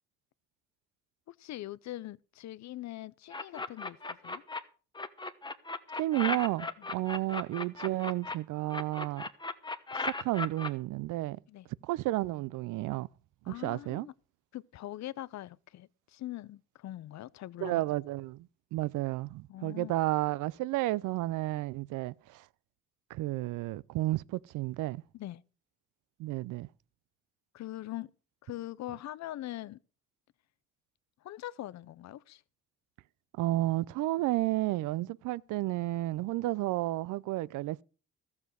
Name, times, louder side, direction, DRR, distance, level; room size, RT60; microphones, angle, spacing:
voice 1, 1.3-4.4 6.8-6.9 11.5-11.7 13.5-14.1 14.5-17.8 19.5-19.9 25.1-25.4 27.5-28.1 28.4-29.8 31.2-32.4, left 14 dB, 65° left, 0.6 m, -42 dB
sound 1, 3.3-4.6 4.9-8.3 8.7-10.7, left 3 dB, 15° left, 1.0 m, -36 dB
voice 2, 6.0-9.2 9.9-11.4 11.8-13.1 13.5-14.1 17.6-22.5 23.1-25.0 26.2-26.7 33.3-37.8, right 17 dB, 85° right, 0.5 m, -32 dB
13.5 x 7.3 x 6.2 m
cardioid pair, 90°, 30 cm